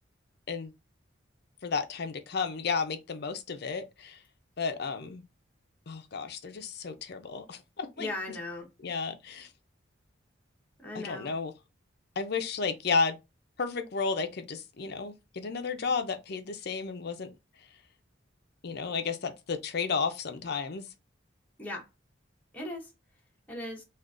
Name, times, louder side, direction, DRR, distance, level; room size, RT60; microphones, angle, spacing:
voice 1, 1.6-4.2 4.6-5.2 5.9-8.1 8.8-9.5 10.9-11.5 12.2-13.2 13.6-17.3 18.6-20.8, left 5 dB, 55° left, 0.5 m, -32 dB
voice 2, 8.0-8.7 10.8-11.3 21.6-21.8 22.5-22.9 23.5-23.8, left 2 dB, 10° left, 0.8 m, -37 dB
3.7 x 2.4 x 2.4 m
head